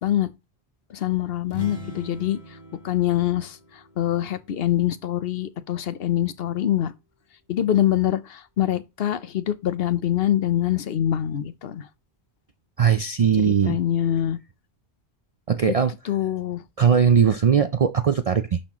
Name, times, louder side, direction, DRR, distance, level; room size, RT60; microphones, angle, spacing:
voice 1, 0.0-0.3 0.9-2.4 2.8-3.6 4.0-6.9 7.5-11.9 13.4-14.4 16.0-16.6, left 11 dB, 65° left, 0.9 m, -24 dB
sound 1, 1.4-5.2, left 2 dB, 45° left, 1.5 m, -41 dB
voice 2, 12.8-13.8 15.5-15.9 16.8-18.6, right 7 dB, 50° right, 0.4 m, -19 dB
11.5 x 4.3 x 3.0 m
omnidirectional pair, 1.1 m